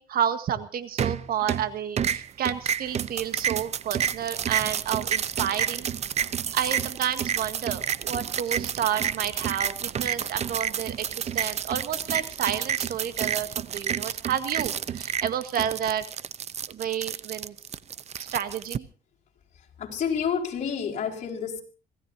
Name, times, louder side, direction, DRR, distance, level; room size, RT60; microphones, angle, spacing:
voice 1, 0.0-5.9 6.5-16.1 16.7-17.5 18.2-18.9, right 9 dB, 60° right, 1.8 m, -30 dB
sound 1, 1.0-1.7 2.0-18.8, right 8 dB, 40° right, 0.7 m, -30 dB
voice 2, 19.5-21.6, left 7 dB, 45° left, 4.9 m, -29 dB
25.5 x 17.0 x 2.8 m
cardioid pair, 110°, 17 cm